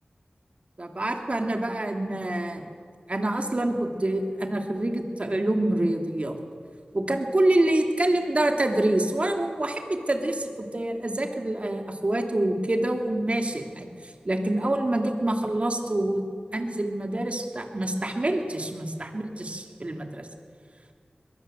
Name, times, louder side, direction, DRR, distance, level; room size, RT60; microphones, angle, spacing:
voice 1, 0.8-2.7 3.1-6.4 6.9-16.2 16.5-20.3, right 1 dB, 40° right, 4 dB, 2.7 m, -26 dB
22.0 x 22.0 x 7.7 m, 2.1 s
wide cardioid pair, 70°, 3 cm